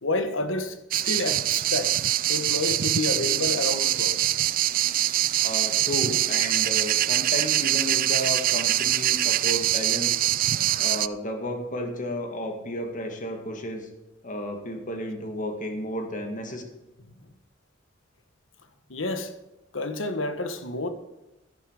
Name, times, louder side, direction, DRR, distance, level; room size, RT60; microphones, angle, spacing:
voice 1, 0.0-2.0 2.3-4.2 18.9-19.3 19.7-20.9, left 2 dB, 85° left, 1.3 m, -29 dB
sound 1, 0.9-11.1, right 13 dB, 45° right, 0.4 m, -24 dB
voice 2, 5.4-10.2 10.8-13.9 14.2-16.6, equal, 40° left, 2.2 m, -32 dB
12.5 x 11.0 x 4.9 m
head